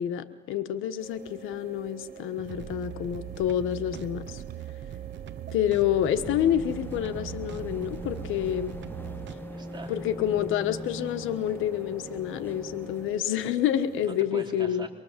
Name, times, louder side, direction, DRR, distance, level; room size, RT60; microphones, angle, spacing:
voice 1, 0.0-4.4 5.5-8.7 9.9-14.9, left 10 dB, 90° left, 9 dB, 1.3 m, -28 dB
sound 1, 1.0-14.2, right 6 dB, 50° right, 4.2 m, -46 dB
sound 2, 2.3-9.3, right 13 dB, 65° right, 0.9 m, -40 dB
sound 3, 6.2-13.2, left 2 dB, 10° left, 1.0 m, -42 dB
voice 2, 8.9-10.0 14.0-14.9, right 4 dB, 25° right, 1 dB, 3.6 m, -43 dB
24.5 x 22.5 x 7.5 m, 1.2 s
cardioid pair, 90°, 20 cm